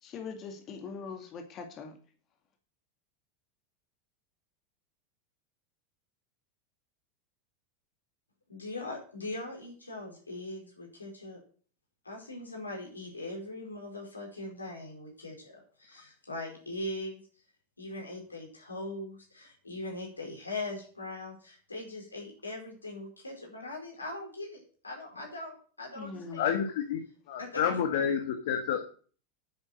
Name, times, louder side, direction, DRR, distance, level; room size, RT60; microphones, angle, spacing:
voice 1, 0.0-2.0 26.0-26.4, left 5 dB, 35° left, 5 dB, 2.3 m, -42 dB
voice 2, 8.5-11.4 12.0-17.2 17.8-26.5 27.4-27.8, left 2 dB, 85° left, 0 dB, 4.6 m, -41 dB
voice 3, 26.4-27.0 27.3-28.8, left 8 dB, 60° left, 5 dB, 1.8 m, -29 dB
9.7 x 7.8 x 7.7 m, 0.43 s
figure-of-eight pair, 85°, 0 cm